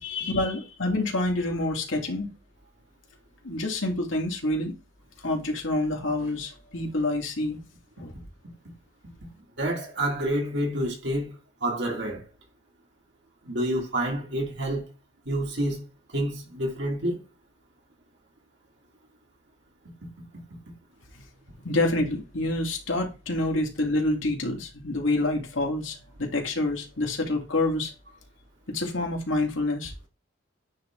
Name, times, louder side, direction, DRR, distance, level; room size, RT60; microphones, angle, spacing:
voice 1, 0.0-2.3 3.4-4.7 5.2-7.6 8.0-8.1 21.1-21.2 21.5-27.9 28.7-29.9, left 2 dB, 80° left, 2.2 m, -27 dB
voice 2, 9.6-12.2 13.4-14.9 15.3-15.8 16.1-17.2, right 1 dB, 65° right, 2.5 m, -28 dB
9.3 x 3.4 x 3.7 m
head